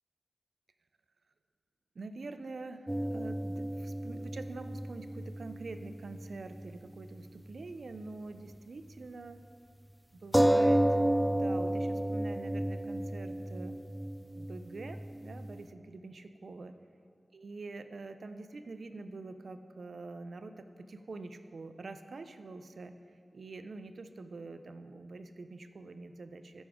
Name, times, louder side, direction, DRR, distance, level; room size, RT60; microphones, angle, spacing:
voice 1, 1.9-9.4 10.1-11.0 11.3-13.8 14.4-16.7 17.3-26.6, right 3 dB, 85° right, 9 dB, 0.5 m, -45 dB
sound 1, 2.9-6.7 7.0-7.1 10.3-15.6, right 1 dB, 10° right, 0.3 m, -31 dB
14.0 x 6.2 x 3.6 m, 2.2 s
wide cardioid pair, 90°, 0 cm